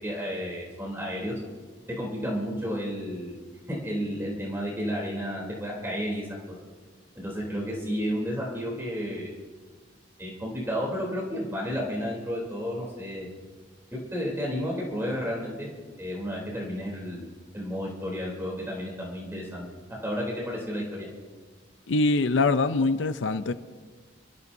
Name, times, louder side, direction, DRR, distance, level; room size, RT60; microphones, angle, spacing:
voice 1, 0.0-1.3 1.9-3.4 3.7-6.3 7.1-9.3 10.2-13.3 13.9-15.7 16.0-17.3 17.5-21.1, equal, 15° right, -4 dB, 3.3 m, -32 dB
voice 2, 21.9-23.5, left 3 dB, 85° left, 12 dB, 0.5 m, -23 dB
29.0 x 14.0 x 2.7 m, 1.5 s
head